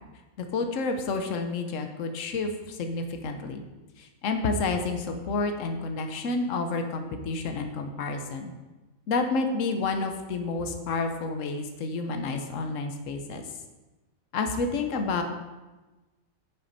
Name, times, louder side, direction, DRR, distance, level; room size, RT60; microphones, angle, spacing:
voice 1, 0.5-3.6 4.0-8.5 9.1-13.4 14.3-15.2, left 3 dB, 65° left, 5 dB, 1.2 m, -29 dB
10.5 x 6.2 x 4.2 m, 1.1 s
omnidirectional pair, 1.5 m